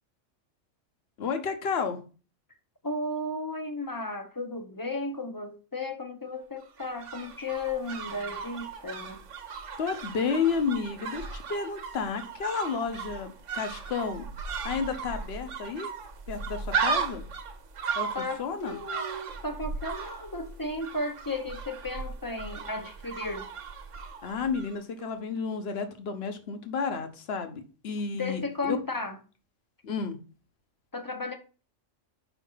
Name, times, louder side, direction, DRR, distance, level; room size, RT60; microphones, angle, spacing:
voice 1, 1.2-2.0 9.8-14.3 14.6-15.9 16.3-17.2 17.9-18.8 24.2-28.8 29.8-30.2, left 5 dB, 55° left, 1.2 m, -31 dB
voice 2, 2.8-9.2 18.1-23.5 28.1-29.2 30.9-31.3, left 2 dB, 20° left, 0.8 m, -34 dB
sound 1, 6.6-24.8 25.0-25.1, right 6 dB, 70° right, 1.2 m, -36 dB
5.9 x 5.2 x 5.5 m
omnidirectional pair, 1.3 m